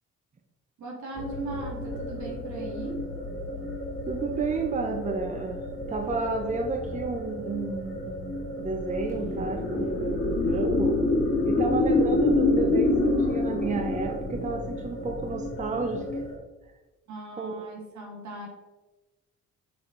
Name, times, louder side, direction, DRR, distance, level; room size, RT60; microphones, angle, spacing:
voice 1, 0.8-3.0 17.1-18.5, right 2 dB, 70° right, -1 dB, 2.1 m, -38 dB
sound 1, 1.2-16.4, left 2 dB, 40° left, 1.7 m, -28 dB
voice 2, 4.1-5.6 5.9-11.0 11.5-16.2 17.4-17.7, right 3 dB, 25° right, 4 dB, 0.7 m, -31 dB
6.5 x 4.3 x 3.9 m, 1.2 s
cardioid pair, 90°, 30 cm